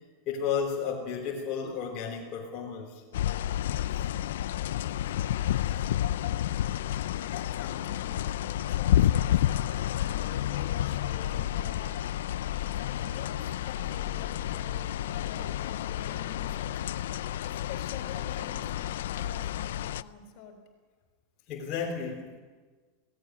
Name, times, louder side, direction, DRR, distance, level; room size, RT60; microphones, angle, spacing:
voice 1, 0.3-3.0 3.9-4.0 5.7-5.8 21.5-22.4, left 7 dB, 35° left, -3 dB, 3.3 m, -33 dB
sound 1, 3.1-20.0, left 12 dB, 85° left, 0.5 m, -30 dB
voice 2, 7.3-12.0 12.6-16.7 17.4-20.6, left 6 dB, 50° left, 4 dB, 4.0 m, -47 dB
17.5 x 17.0 x 9.5 m, 1.4 s
supercardioid pair, 160°, 0 cm